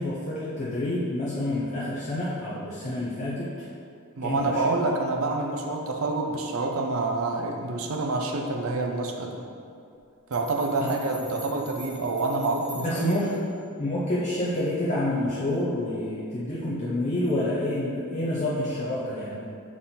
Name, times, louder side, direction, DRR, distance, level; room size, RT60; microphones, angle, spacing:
voice 1, 0.0-3.7 4.2-4.7 10.8-10.9 12.7-13.4 13.8-19.5, left 1 dB, 35° left, -8 dB, 0.7 m, -28 dB
voice 2, 4.2-9.4 10.3-13.2, right 3 dB, 70° right, 2 dB, 0.6 m, -27 dB
sound 1, 10.0-10.1 10.3-13.5, right 2 dB, 15° right, 1.0 m, -45 dB
6.2 x 3.8 x 3.9 m, 2.4 s
head